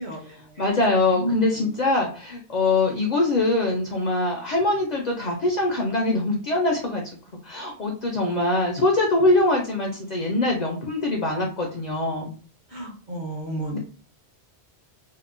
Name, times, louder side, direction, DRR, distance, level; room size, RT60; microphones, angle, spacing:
voice 1, 0.0-0.7 1.1-1.7 12.7-13.8, right 1 dB, 50° right, 1 dB, 0.7 m, -32 dB
voice 2, 0.6-7.0 7.4-12.3 13.7-13.8, left 2 dB, 55° left, 0 dB, 0.5 m, -23 dB
2.8 x 2.0 x 2.5 m, 0.39 s
omnidirectional pair, 1.1 m